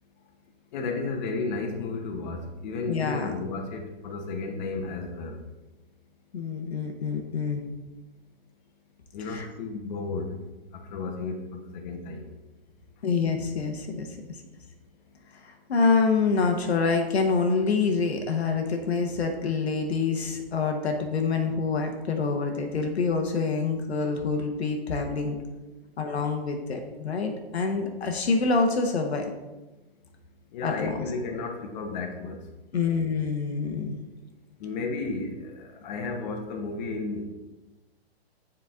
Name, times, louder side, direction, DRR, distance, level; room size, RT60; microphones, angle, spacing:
voice 1, 0.7-5.4 9.1-10.3 10.7-12.3 30.5-32.4 34.6-37.3, left 3 dB, 45° left, 3 dB, 1.1 m, -33 dB
voice 2, 2.9-3.3 6.3-7.6 9.3-9.5 13.0-14.1 15.4-25.4 26.0-29.3 30.6-31.1 32.7-34.0, left 4 dB, 80° left, 4 dB, 1.2 m, -26 dB
7.7 x 4.5 x 3.7 m, 1.1 s
hypercardioid pair, 135°, 32 cm